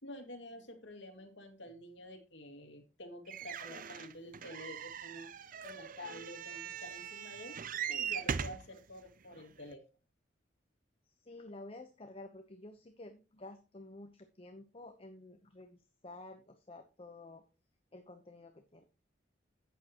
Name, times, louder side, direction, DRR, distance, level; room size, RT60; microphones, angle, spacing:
voice 1, 0.0-5.3 5.6-7.6 7.9-9.8, left 1 dB, 75° left, 3 dB, 2.4 m, -49 dB
sound 1, 3.3-8.7 9.4-9.5 9.7-9.8, right 7 dB, 50° right, 0.5 m, -40 dB
voice 2, 11.0-17.4 17.9-18.8, left 2 dB, 30° left, 6 dB, 1.0 m, -51 dB
11.5 x 8.5 x 3.0 m, 0.31 s
head